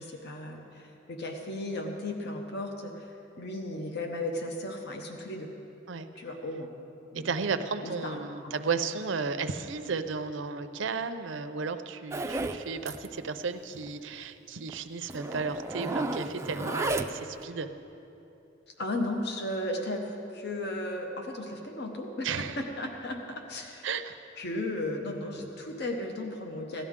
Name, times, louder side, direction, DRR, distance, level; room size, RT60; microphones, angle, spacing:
voice 1, 0.0-3.1 3.4-5.5 6.2-6.7 7.1-8.6 18.8-23.9 24.4-26.8, left 1 dB, 60° left, 3 dB, 1.0 m, -35 dB
voice 2, 7.1-17.7 22.2-22.6 23.8-24.2, right 5 dB, 75° right, 10 dB, 0.6 m, -33 dB
Zipper (clothing), 12.1-12.6 12.9-13.1 13.4-13.5 13.8-13.9 14.7-14.8 15.1-17.4, right 2 dB, 15° right, 0.4 m, -33 dB
17.0 x 12.0 x 3.7 m, 2.9 s
head